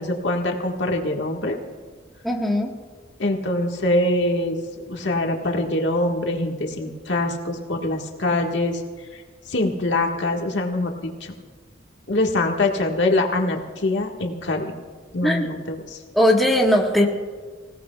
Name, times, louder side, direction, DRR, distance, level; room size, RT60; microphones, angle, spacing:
voice 1, 0.0-1.6 3.2-4.6 4.9-8.8 9.1-9.2 9.5-11.3 12.1-14.7 15.1-16.0, left 2 dB, 70° left, 1 dB, 1.6 m, -24 dB
voice 2, 2.2-2.7 15.2-15.5 16.1-17.1, left 1 dB, ahead, -2 dB, 1.4 m, -19 dB
26.0 x 17.0 x 2.4 m, 1.5 s
head